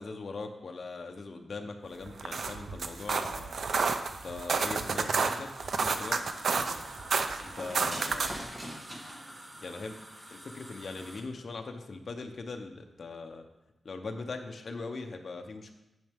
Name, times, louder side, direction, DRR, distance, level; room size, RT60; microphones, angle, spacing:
voice 1, 0.0-3.6 4.2-5.5 5.8-6.2 7.4-8.4 9.6-10.0 10.3-13.4 13.8-15.7, left 3 dB, 45° left, 5 dB, 0.8 m, -40 dB
sound 1, 2.1-8.5, right 4 dB, 55° right, 0.5 m, -31 dB
sound 2, 5.6-11.2, equal, 15° right, 1.1 m, -44 dB
9.1 x 6.5 x 3.5 m, 0.95 s
wide cardioid pair, 175°, 0 cm